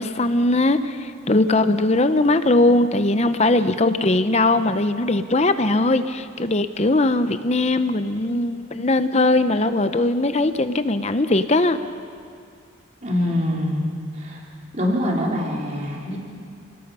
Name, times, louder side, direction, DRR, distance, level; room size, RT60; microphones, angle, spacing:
voice 1, 0.0-11.8, left 2 dB, 35° left, 10 dB, 0.7 m, -20 dB
voice 2, 13.0-13.8 14.1-14.4 14.7-16.2, left 1 dB, 35° right, -3 dB, 3.5 m, -24 dB
30.0 x 18.5 x 5.6 m, 2.2 s
head